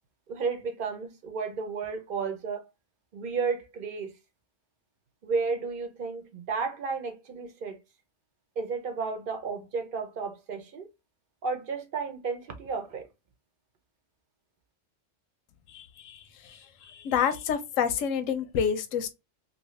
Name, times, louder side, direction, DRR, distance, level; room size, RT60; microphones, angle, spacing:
voice 1, 0.3-2.6 3.1-4.1 5.2-7.8 8.6-10.9 11.4-13.1, right 4 dB, 50° right, 0.8 m, -32 dB
voice 2, 15.7-19.1, left 8 dB, 85° left, 1.0 m, -29 dB
2.7 x 2.7 x 3.1 m
omnidirectional pair, 1.3 m